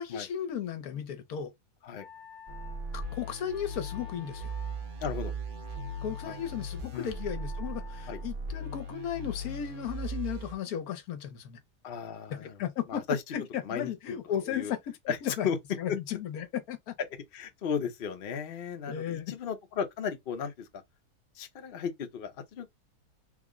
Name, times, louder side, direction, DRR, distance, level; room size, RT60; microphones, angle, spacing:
voice 1, 0.0-1.5 2.9-4.5 6.0-11.6 12.4-13.0 13.3-14.8 15.2-15.5 15.8-16.9 18.9-19.3, left 9 dB, 70° left, 1.1 m, -35 dB
Wind instrument woodwind instrument, 2.0-8.3, left 5 dB, ahead, 0.4 m, -51 dB
sound 1, 2.5-10.5, right 1 dB, 40° right, 0.9 m, -38 dB
voice 2, 5.0-5.3 6.2-6.4 6.9-7.1 8.1-8.2 11.8-12.6 12.9-13.3 13.6-14.2 14.4-14.7 15.1-15.2 15.4-15.6 17.3-20.8 21.4-22.7, left 6 dB, 55° left, 0.6 m, -35 dB
3.5 x 2.0 x 3.6 m
omnidirectional pair, 1.7 m